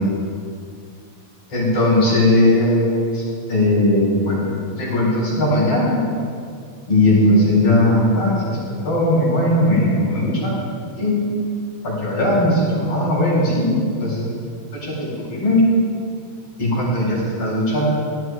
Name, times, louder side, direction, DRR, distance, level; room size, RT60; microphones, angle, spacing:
voice 1, 1.5-3.2 3.5-6.0 6.9-8.6 8.8-10.6 11.0-11.2 12.0-14.3 14.7-15.6 16.6-17.9, left 1 dB, 40° left, -6 dB, 5.4 m, -18 dB
17.5 x 12.5 x 4.8 m, 2.3 s
omnidirectional pair, 4.2 m